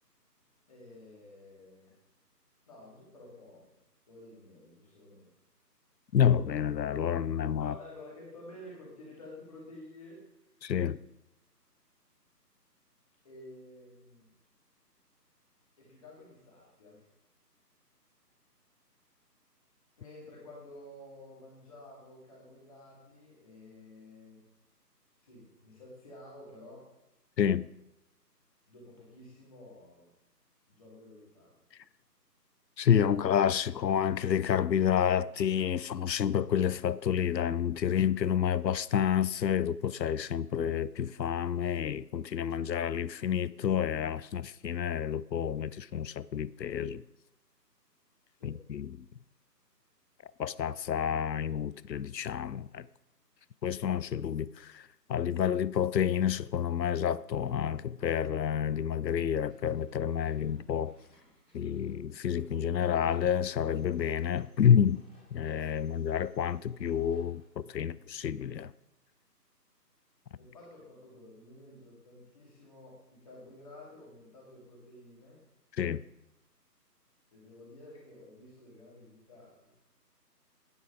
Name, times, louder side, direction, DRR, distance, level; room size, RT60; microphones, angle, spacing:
voice 1, 0.7-1.9 2.7-3.6 4.1-5.3 7.6-10.2 13.2-14.3 15.8-17.1 20.0-24.4 25.2-26.9 28.7-30.1 30.7-31.6 48.4-48.6 70.4-75.4 77.3-79.7, left 1 dB, 20° left, 2.2 m, -51 dB
voice 2, 6.1-7.7 10.6-11.0 27.4-27.7 32.8-47.0 48.4-49.0 50.4-52.9 53.6-60.9 61.5-65.0 65.3-68.7 75.8-76.0, left 8 dB, 80° left, 0.6 m, -29 dB
sound 1, 59.5-67.4, equal, 5° right, 1.5 m, -64 dB
9.9 x 7.8 x 4.9 m
figure-of-eight pair, 155°, 49 cm